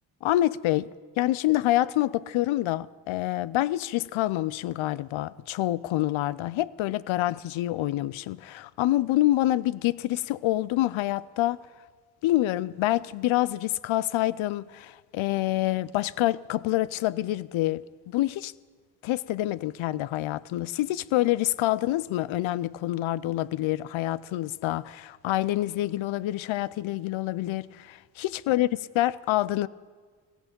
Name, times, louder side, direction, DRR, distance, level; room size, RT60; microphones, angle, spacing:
voice 1, 0.2-0.9 1.2-11.6 12.2-18.5 19.0-28.7 29.0-29.7, left 15 dB, 80° left, 0.5 m, -27 dB
16.5 x 15.0 x 5.2 m
supercardioid pair, 40°, 47 cm